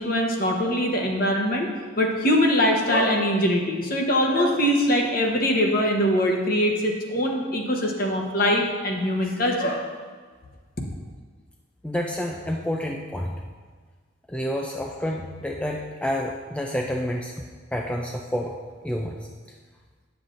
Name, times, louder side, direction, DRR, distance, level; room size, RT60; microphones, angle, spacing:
voice 1, 0.0-1.7 2.0-9.9, equal, 45° left, 1 dB, 1.0 m, -22 dB
voice 2, 11.8-13.4 14.3-17.3 17.7-19.3, equal, 5° left, 0 dB, 0.3 m, -29 dB
9.4 x 7.1 x 2.5 m, 1.5 s
head